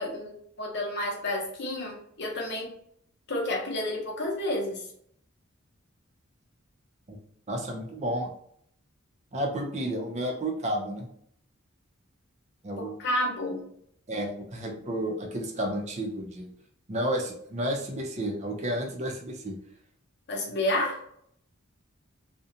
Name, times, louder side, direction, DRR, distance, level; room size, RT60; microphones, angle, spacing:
voice 1, 0.0-2.7 3.3-4.9 12.8-13.6 20.3-21.0, left 1 dB, 55° left, 0 dB, 0.8 m, -30 dB
voice 2, 7.5-8.3 9.3-11.1 12.6-13.0 14.1-16.5 16.9-19.6, right 1 dB, 35° right, 2 dB, 0.5 m, -31 dB
2.4 x 2.1 x 2.7 m, 0.66 s
head